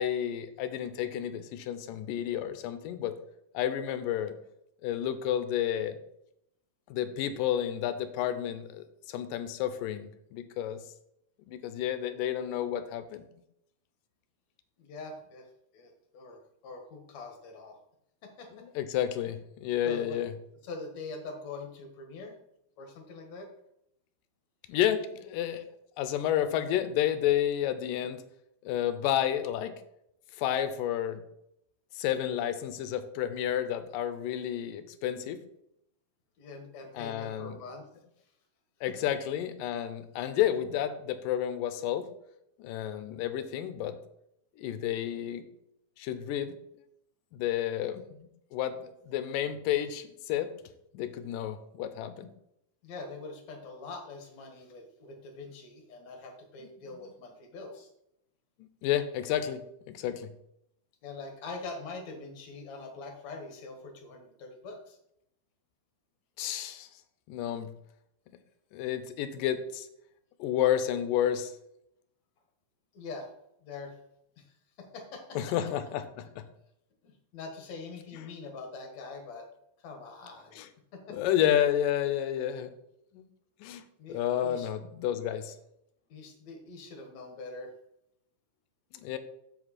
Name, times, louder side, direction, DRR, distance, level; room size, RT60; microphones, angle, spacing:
voice 1, 0.0-3.2 3.5-4.4 4.8-6.0 6.9-10.8 11.5-13.2 18.6-20.3 24.7-25.7 26.0-28.2 28.7-29.8 30.4-31.2 31.9-35.4 36.9-37.6 38.8-42.1 42.6-44.0 44.6-45.5 46.0-46.6 47.3-50.5 50.9-52.3 58.8-59.6 59.9-60.3 66.4-66.9 67.3-67.7 68.7-69.9 70.4-71.5 75.4-76.4 80.6-80.7 81.1-82.7 83.1-83.2 83.6-83.8 84.1-85.5 89.0-89.2, left 10 dB, 80° left, 11 dB, 2.3 m, -31 dB
voice 2, 14.8-15.5 15.7-17.8 18.2-18.6 19.8-20.2 20.6-22.4 22.8-23.5 36.4-37.9 52.8-57.9 61.0-65.0 72.9-73.3 73.6-74.0 74.4-75.5 77.0-79.5 79.8-80.6 80.9-81.2 84.0-84.7 86.1-87.7, left 3 dB, 60° left, 4 dB, 2.4 m, -43 dB
7.6 x 7.5 x 4.2 m, 0.78 s
omnidirectional pair, 4.0 m